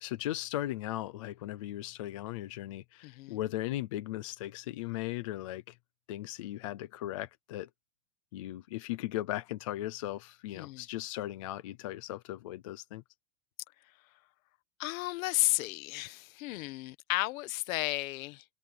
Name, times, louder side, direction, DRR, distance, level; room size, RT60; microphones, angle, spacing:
voice 1, 0.0-5.8 6.1-7.7 8.3-13.0, left 14 dB, 25° left, 0.3 m, -37 dB
voice 2, 3.0-3.4 10.5-10.9 14.8-18.4, left 19 dB, 55° left, 1.4 m, -33 dB
supercardioid pair, 165°, 50 cm